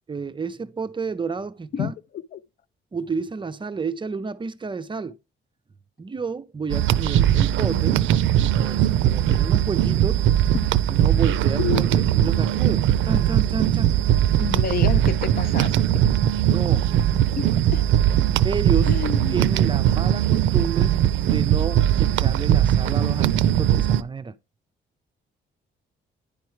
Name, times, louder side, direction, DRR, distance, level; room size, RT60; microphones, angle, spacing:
voice 1, 0.1-1.9 2.9-5.2 6.0-8.0 8.6-10.2 10.9-11.8 12.2-13.9 16.5-16.9 18.4-19.0 19.3-21.0 21.2-24.3, right 4 dB, 25° right, 0.5 m, -30 dB
voice 2, 1.7-2.4 10.5-10.7 11.6-12.2 14.4-16.0 17.4-17.9 18.9-19.4, left 9 dB, 50° left, 0.4 m, -30 dB
sound 1, 6.7-24.0, right 11 dB, 75° right, 0.4 m, -20 dB
10.5 x 4.6 x 3.0 m
cardioid pair, 90°, 20 cm